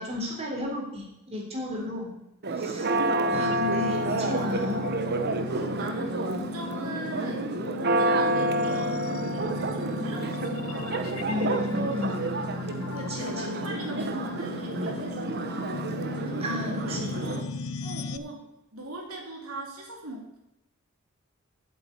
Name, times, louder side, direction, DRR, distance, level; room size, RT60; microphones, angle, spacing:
voice 1, 0.0-2.1 2.5-2.8 3.3-4.9 11.2-12.2 13.1-13.5 13.9-14.1 16.4-17.1, left 2 dB, 30° right, -2 dB, 3.6 m, -33 dB
Church bell, 2.4-17.4, right 2 dB, 50° right, 1.0 m, -29 dB
voice 2, 3.0-3.5 5.5-7.5 7.8-11.1 12.9-15.8 16.8-17.5 17.8-20.4, right 1 dB, 85° right, 0 dB, 2.7 m, -40 dB
sound 1, 3.3-18.2, left 3 dB, 85° left, 0.6 m, -36 dB
8.5 x 7.6 x 8.9 m, 0.88 s
head